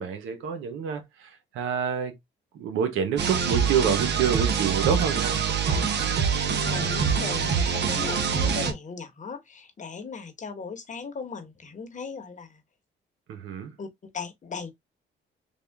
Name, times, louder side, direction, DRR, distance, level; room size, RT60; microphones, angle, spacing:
voice 1, 0.0-2.1 2.5-5.4 13.3-13.7, right 7 dB, 85° right, 1.0 m, -27 dB
sound 1, 3.2-8.7, right 6 dB, 60° right, 0.8 m, -25 dB
voice 2, 5.7-6.3 6.7-12.6 13.8-13.9 14.1-14.7, left 5 dB, 40° left, 1.0 m, -37 dB
3.6 x 2.4 x 3.4 m
cardioid pair, 90°, 20 cm